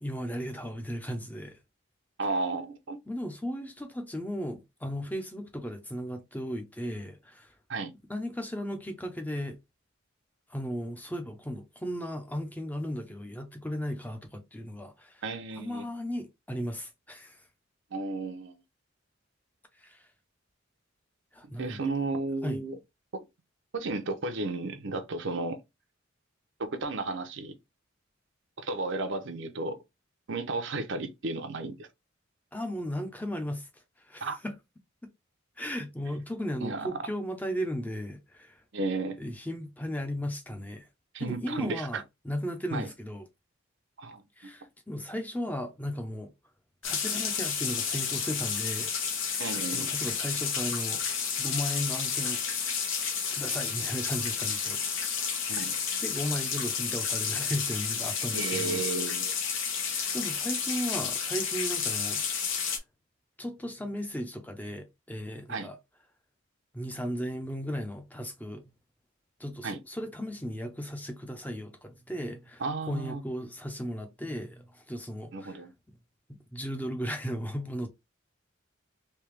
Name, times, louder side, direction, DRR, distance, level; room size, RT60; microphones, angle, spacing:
voice 1, 0.0-1.6 3.1-7.5 8.1-9.6 10.5-15.2 15.6-17.4 19.8-20.1 21.3-21.9 22.4-22.6 32.5-33.7 34.0-34.5 35.6-38.6 39.2-40.9 41.2-43.2 44.4-46.3 46.8-48.9 49.3-49.4 49.7-52.4 53.3-54.8 55.2-55.5 56.0-58.8 59.8-62.2 63.4-65.8 66.7-68.7 69.4-72.6 72.9-75.7 76.5-77.9, equal, 10° left, 0.6 m, -36 dB
voice 2, 2.2-3.0 7.7-7.9 15.2-15.8 17.9-18.5 21.6-22.8 23.1-23.2 23.7-25.6 26.6-27.5 28.6-29.8 30.3-31.9 34.2-34.4 36.6-36.9 38.7-39.2 41.1-42.0 42.7-42.9 44.0-44.2 49.4-49.9 55.5-55.7 58.3-59.3 65.5-65.7 69.6-69.8 72.6-73.2 75.3-75.7, right 3 dB, 65° right, 0.7 m, -33 dB
sound 1, 46.8-62.8, left 6 dB, 70° left, 1.0 m, -31 dB
3.3 x 2.8 x 3.2 m
head